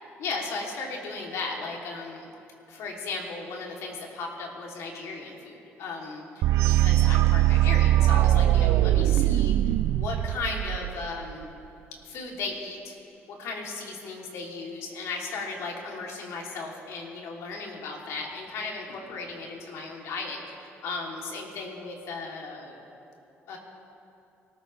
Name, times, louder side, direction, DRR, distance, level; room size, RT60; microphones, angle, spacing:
voice 1, 0.2-2.3 2.7-9.5 9.9-11.5 12.0-13.0 13.3-22.8 23.5-23.6, left 3 dB, 75° left, -1 dB, 3.2 m, -36 dB
sound 1, 6.4-11.3, right 14 dB, 75° right, 0.3 m, -21 dB
25.0 x 14.0 x 3.4 m, 2.7 s
cardioid pair, 85°, 5 cm